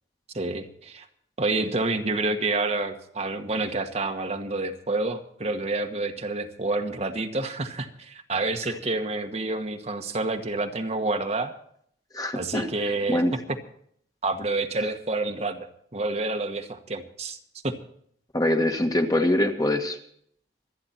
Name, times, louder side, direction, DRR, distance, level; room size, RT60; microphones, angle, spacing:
voice 1, 0.3-1.1 1.4-11.5 12.3-13.2 14.2-15.7 15.9-17.4 17.6-17.7, right 2 dB, 35° right, 5 dB, 1.3 m, -28 dB
voice 2, 12.1-12.7 13.1-13.3 18.3-20.0, left 1 dB, 20° left, 4 dB, 1.6 m, -23 dB
26.0 x 9.8 x 4.3 m, 0.64 s
head